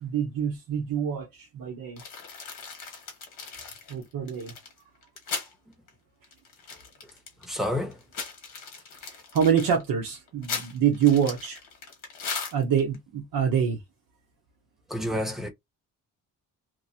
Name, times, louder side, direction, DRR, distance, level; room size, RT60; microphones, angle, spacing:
voice 1, 0.0-2.0 3.9-4.5 9.0-11.6 12.5-13.8, right 8 dB, 75° right, 0.9 m, -26 dB
sound 1, 2.0-5.5 5.9-6.0 6.2-7.5 7.9-13.0, left 5 dB, 60° left, 1.3 m, -38 dB
voice 2, 7.0-8.0 14.9-15.5, left 1 dB, ahead, 0.6 m, -30 dB
2.9 x 2.5 x 2.7 m
cardioid pair, 175°, 35 cm